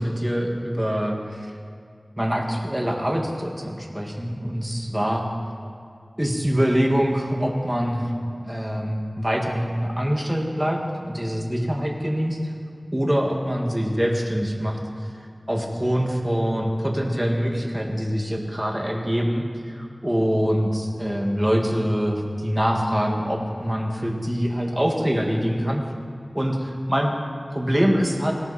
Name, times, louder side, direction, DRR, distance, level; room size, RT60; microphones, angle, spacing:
voice 1, 0.0-1.5 2.2-5.2 6.2-8.1 8.4-12.4 12.9-14.8 15.5-25.8 26.3-27.1 27.5-28.3, equal, 15° right, 0 dB, 2.2 m, -24 dB
18.5 x 17.5 x 4.4 m, 2.2 s
wide cardioid pair, 50°, 0 cm